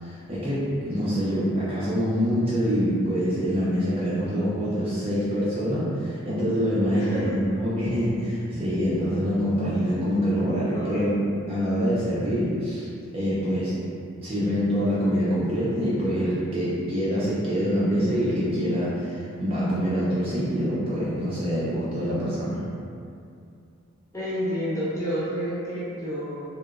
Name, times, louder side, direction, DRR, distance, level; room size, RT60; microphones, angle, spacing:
voice 1, 0.0-11.1 11.5-12.9 13.1-13.8 14.2-22.6, equal, 25° right, -9 dB, 0.4 m, -25 dB
voice 2, 6.9-7.4 10.7-11.1 24.1-26.4, equal, 15° left, -10 dB, 0.6 m, -30 dB
2.8 x 2.0 x 2.3 m, 2.4 s
head